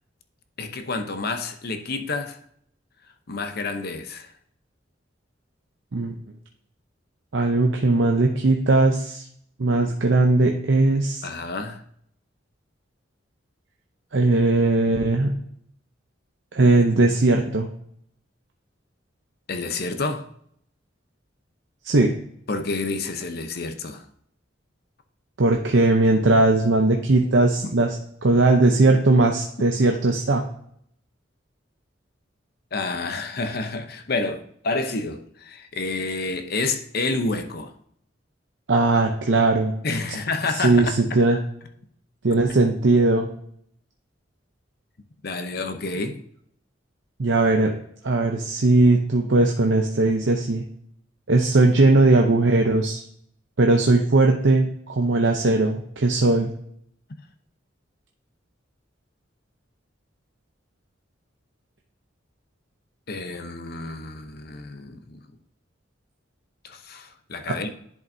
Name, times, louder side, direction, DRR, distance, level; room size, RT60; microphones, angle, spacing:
voice 1, 0.6-2.4 3.3-4.3 11.2-11.8 19.5-20.3 22.5-24.0 27.6-27.7 32.7-37.7 39.8-41.2 45.2-46.2 63.1-65.2 66.6-67.7, left 3 dB, 55° left, 0.8 m, -29 dB
voice 2, 7.3-9.2 9.6-11.3 14.1-15.3 16.5-17.7 21.8-22.1 25.4-27.9 28.2-30.4 38.7-39.7 40.6-41.4 42.2-43.3 47.2-47.7 48.0-50.6 51.3-53.0 53.6-56.5, right 2 dB, 70° right, 0.7 m, -19 dB
10.5 x 5.3 x 2.7 m
head